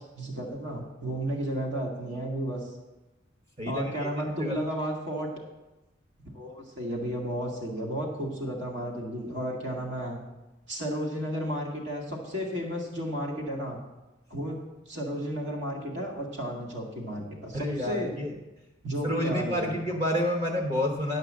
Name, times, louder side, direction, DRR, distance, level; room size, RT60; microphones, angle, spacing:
voice 1, 0.2-2.6 3.7-5.3 6.3-10.2 10.7-13.8 14.3-14.6 14.9-18.1 18.8-19.7, equal, 65° right, -1 dB, 1.9 m, -33 dB
voice 2, 3.6-4.5 17.5-18.3 19.0-21.2, left 1 dB, 30° right, 1 dB, 1.0 m, -29 dB
10.5 x 5.3 x 7.4 m, 1.0 s
head